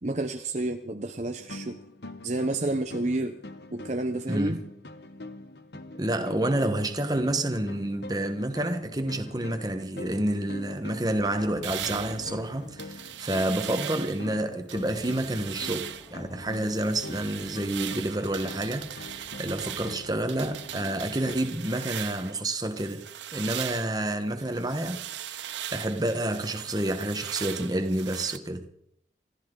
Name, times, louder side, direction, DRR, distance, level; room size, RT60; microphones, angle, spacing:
voice 1, 0.0-1.8 2.2-3.4 3.7-4.6, right 2 dB, 40° right, 0.9 m, -30 dB
sound 1, 1.4-21.4, left 2 dB, 70° left, 1.1 m, -44 dB
voice 2, 4.3-4.6 6.0-23.1 23.3-28.7, right 1 dB, 20° right, 1.3 m, -29 dB
sound 2, 11.1-20.8, equal, 25° left, 3.8 m, -55 dB
sound 3, 11.6-14.3 14.7-16.1 16.5-22.4 22.8-28.4, right 11 dB, 85° right, 0.7 m, -39 dB
28.0 x 13.0 x 3.9 m
head